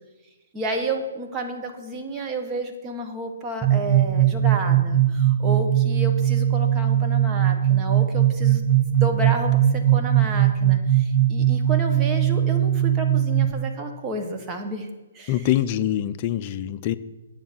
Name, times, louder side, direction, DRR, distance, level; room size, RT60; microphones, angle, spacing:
voice 1, 0.5-8.6 9.0-14.9 15.1-15.5, right 2 dB, 20° right, 3 dB, 1.4 m, -31 dB
sound 1, 3.6-13.5, right 11 dB, ahead, 1.1 m, -20 dB
voice 2, 15.3-16.9, left 12 dB, 35° left, 11 dB, 0.5 m, -24 dB
9.2 x 7.2 x 7.4 m, 1.2 s
hypercardioid pair, 135°, 0 cm